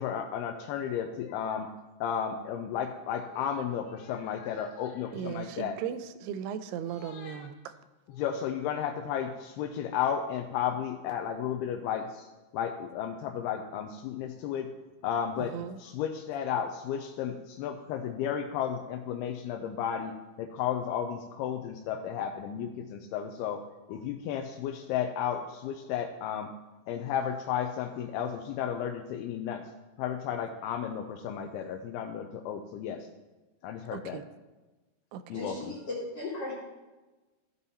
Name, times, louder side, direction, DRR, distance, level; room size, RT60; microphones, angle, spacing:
voice 1, 0.0-1.7 2.0-5.7 7.1-7.5 8.2-12.2 12.5-14.7 15.0-15.5 15.8-20.1 20.4-23.6 23.9-26.5 26.9-29.6 30.0-33.1 33.6-34.2 35.3-35.6, left 8 dB, 85° left, 4 dB, 2.5 m, -33 dB
voice 2, 5.1-7.8 15.4-15.8 33.9-34.3 35.1-35.4, right 9 dB, 85° right, 12 dB, 2.6 m, -37 dB
voice 3, 35.3-36.5, left 2 dB, 45° left, -6 dB, 2.7 m, -36 dB
14.5 x 5.4 x 4.1 m, 1.1 s
omnidirectional pair, 4.6 m